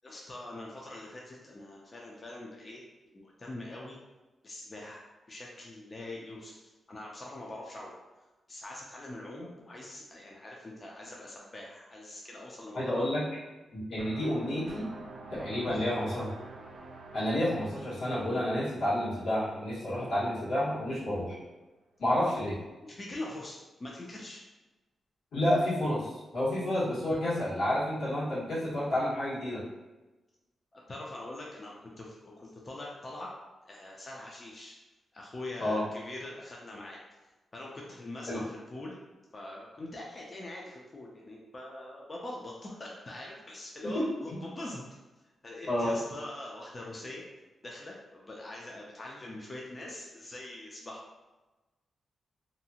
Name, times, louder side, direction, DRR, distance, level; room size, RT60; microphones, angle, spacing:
voice 1, 0.0-2.8 3.1-4.0 4.4-5.0 5.3-8.0 8.5-13.1 15.6-15.8 23.0-24.4 30.7-33.3 33.7-34.7 35.1-37.0 37.5-39.0 39.3-44.8 45.4-47.2 47.6-51.1, left 1 dB, 25° left, -3 dB, 0.4 m, -43 dB
voice 2, 12.7-13.2 13.7-14.9 15.4-16.3 17.1-21.4 22.0-22.6 25.3-29.6 35.6-35.8 38.3-38.4 43.8-44.0 45.7-45.9, left 1 dB, 85° left, -10 dB, 1.4 m, -30 dB
sound 1, 14.0-20.7, right 3 dB, 50° right, 0.3 m, -49 dB
2.6 x 2.4 x 2.7 m, 1.1 s
wide cardioid pair, 170°, 0 cm